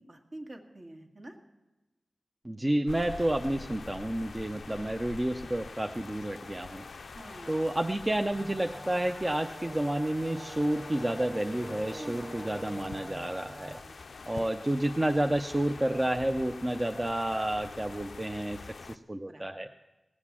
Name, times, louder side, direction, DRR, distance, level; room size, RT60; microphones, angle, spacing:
voice 1, 0.0-1.4 4.7-4.8 7.1-7.6 12.0-12.5 13.8-14.0 14.3-14.5 19.2-19.4, right 1 dB, 50° right, 3 dB, 1.8 m, -46 dB
voice 2, 2.4-6.8 7.5-13.8 14.3-18.6 18.9-19.7, right 1 dB, 20° right, 5 dB, 0.6 m, -30 dB
sound 1, 2.9-19.0, left 4 dB, 80° left, 0.5 m, -46 dB
sound 2, 8.3-13.8, left 1 dB, 5° left, 1.0 m, -47 dB
Wind instrument woodwind instrument, 9.5-13.5, right 2 dB, 90° right, 3.5 m, -46 dB
18.5 x 8.1 x 7.3 m, 1.1 s
wide cardioid pair, 80°, 0 cm